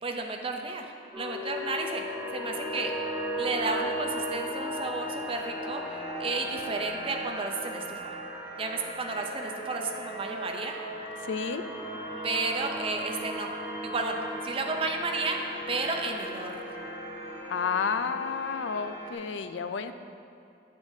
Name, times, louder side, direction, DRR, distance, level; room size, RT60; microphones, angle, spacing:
voice 1, 0.0-2.0 2.3-2.9 3.4-8.0 8.6-10.7 12.2-13.5 13.8-15.4 15.7-16.6, right 3 dB, 30° right, 3 dB, 0.6 m, -32 dB
sound 1, 1.1-19.1, equal, 10° right, 1.3 m, -36 dB
voice 2, 11.2-11.6 17.5-19.9, left 6 dB, 75° left, 10 dB, 0.4 m, -31 dB
8.1 x 8.0 x 2.7 m, 2.7 s
head